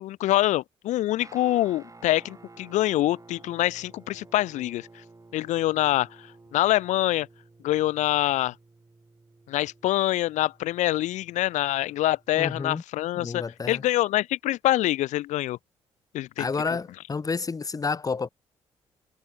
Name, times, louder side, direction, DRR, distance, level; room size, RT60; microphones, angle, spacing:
voice 1, 0.0-4.9 5.3-6.1 6.5-7.3 7.6-8.5 9.5-15.6 16.1-16.5, left 15 dB, 60° left, 0.4 m, -25 dB
Guitar, 1.2-12.6, right 3 dB, 25° right, 5.9 m, -53 dB
voice 2, 12.4-12.8 13.2-13.8 16.4-18.3, left 4 dB, 25° left, 0.7 m, -30 dB
figure-of-eight pair, 40°, 14 cm